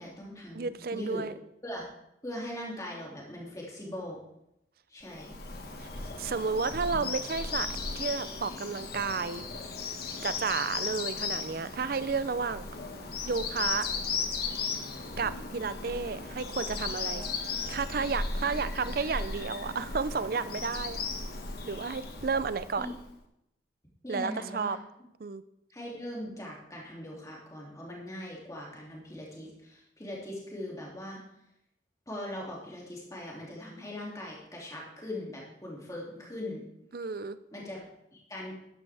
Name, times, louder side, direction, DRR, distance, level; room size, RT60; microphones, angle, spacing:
voice 1, 0.0-1.2 1.6-1.9 2.2-4.2 4.9-5.3 22.8-22.9 24.0-24.8 25.7-31.2 32.1-36.6 37.5-37.8 38.1-38.5, left 1 dB, 20° left, -3 dB, 2.6 m, -40 dB
voice 2, 0.5-1.3 5.8-5.9 6.2-7.7 8.0-9.4 10.2-12.7 13.2-13.8 15.2-17.3 17.7-21.0 21.7-22.9 24.1-24.8 25.2-25.4 36.9-37.4, right 5 dB, 55° right, 14 dB, 0.5 m, -32 dB
Bird vocalization bird call bird song, 5.1-23.1, left 4 dB, 55° left, 1.5 m, -36 dB
12.5 x 10.5 x 3.4 m, 0.81 s
head